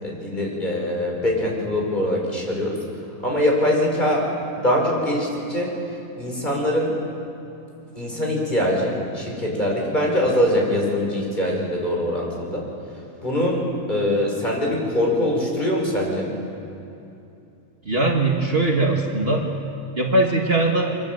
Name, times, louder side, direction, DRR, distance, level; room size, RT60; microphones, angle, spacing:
voice 1, 0.0-2.8 3.2-4.3 4.6-5.7 6.2-6.9 8.0-12.6 13.2-16.3, left 1 dB, 30° left, -1 dB, 5.4 m, -23 dB
voice 2, 17.9-19.5 20.0-21.0, right 2 dB, 45° right, 0 dB, 2.0 m, -20 dB
25.0 x 22.0 x 8.0 m, 2.8 s
omnidirectional pair, 1.5 m